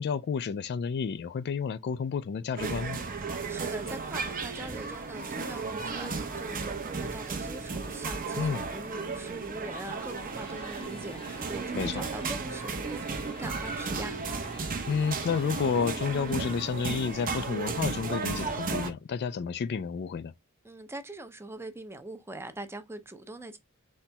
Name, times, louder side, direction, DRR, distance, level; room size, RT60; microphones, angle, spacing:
voice 1, 0.0-3.0 8.4-8.7 11.7-12.0 14.9-20.3, left 6 dB, 50° left, 0.3 m, -30 dB
sound 1, 2.6-18.9, right 4 dB, 40° right, 0.9 m, -34 dB
voice 2, 3.5-14.2 20.6-23.6, right 2 dB, 10° right, 0.6 m, -42 dB
sound 2, 10.3-16.7, left 3 dB, 25° left, 0.7 m, -51 dB
4.2 x 4.0 x 2.2 m
head